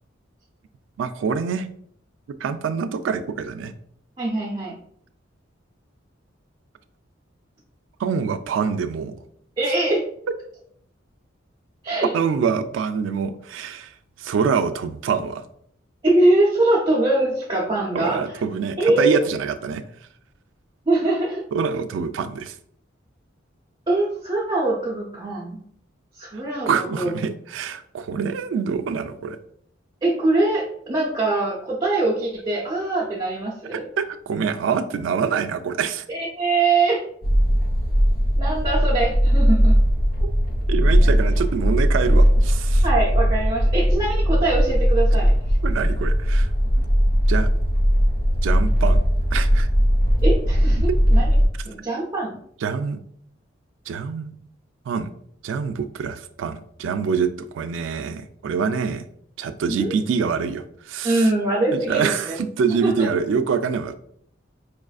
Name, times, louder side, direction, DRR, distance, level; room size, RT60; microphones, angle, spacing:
voice 1, 1.0-1.7 2.4-3.7 8.0-9.1 12.1-13.9 14.2-15.4 17.9-19.8 21.5-22.5 26.3-29.4 33.7-36.1 40.7-42.9 45.6-46.5 47.3-47.5 48.4-49.0 49.3-49.7 52.6-53.0 53.9-54.4 54.9-55.1 55.4-59.0 59.4-61.3 61.7-64.0, right 6 dB, 75° right, 11 dB, 0.3 m, -25 dB
voice 2, 4.2-4.7 9.6-10.0 11.8-12.1 16.0-18.4 18.8-19.2 20.9-21.4 23.9-25.6 26.2-27.1 30.0-33.8 36.1-37.0 38.4-39.8 42.8-45.3 50.2-50.8 51.1-51.3 51.7-52.4 59.7-59.9 61.0-62.1 62.8-63.1, right 2 dB, 25° right, -4 dB, 0.5 m, -22 dB
sound 1, 37.2-51.5, equal, 50° left, 0.5 m, -18 dB
4.7 x 2.4 x 2.3 m, 0.65 s
head